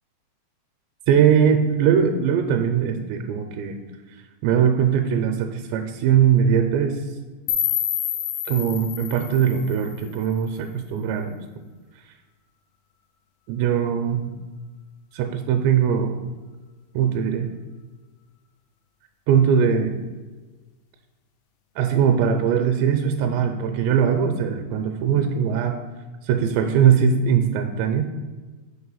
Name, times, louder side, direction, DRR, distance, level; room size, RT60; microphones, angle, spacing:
voice 1, 1.1-3.8 4.4-7.0 8.5-11.4 13.5-14.3 15.1-16.2 16.9-17.5 19.3-20.0 21.8-25.8 26.2-28.1, right 8 dB, 85° right, 5 dB, 2.7 m, -20 dB
sound 1, 7.5-10.5, left 11 dB, 90° left, 2.9 m, -28 dB
6.6 x 4.7 x 5.5 m, 1.3 s
omnidirectional pair, 5.0 m